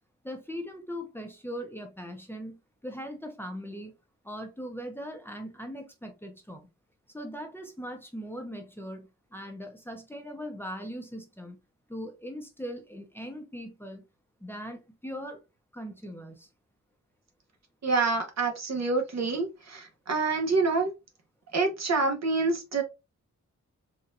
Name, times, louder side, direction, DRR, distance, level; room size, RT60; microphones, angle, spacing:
voice 1, 0.2-2.6 2.8-3.9 4.2-6.7 7.1-11.6 11.9-14.0 14.4-15.4 15.7-16.5, equal, 5° left, 0.7 m, -40 dB
voice 2, 17.8-20.9 21.5-22.8, right 3 dB, 60° right, 1.1 m, -27 dB
4.1 x 2.4 x 2.6 m
wide cardioid pair, 120°, 30 cm